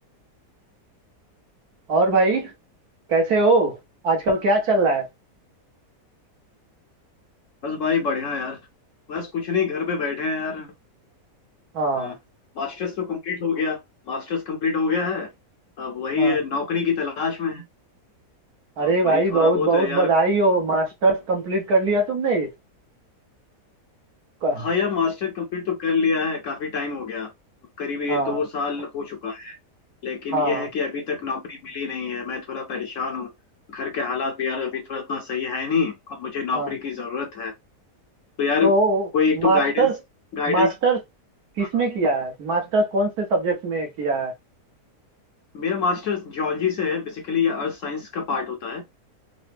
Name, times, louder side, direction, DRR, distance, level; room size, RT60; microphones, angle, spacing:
voice 1, 1.9-2.5 3.1-3.8 4.0-5.0 11.7-12.1 16.2-16.4 18.8-22.5 24.4-24.7 28.1-28.4 30.3-30.7 36.5-36.7 38.6-39.1 39.3-39.9 40.5-41.0 41.6-44.3, right 2 dB, 70° right, 1.5 m, -21 dB
voice 2, 7.6-8.6 9.1-10.7 12.0-12.2 12.5-13.8 14.1-15.3 15.8-17.6 18.8-20.1 24.6-27.3 27.8-29.6 30.0-33.3 33.7-37.5 38.4-38.7 39.1-39.9 40.3-40.7 41.6-41.7 45.5-48.8, left 5 dB, 60° left, 0.9 m, -26 dB
3.9 x 2.1 x 3.2 m
omnidirectional pair, 1.8 m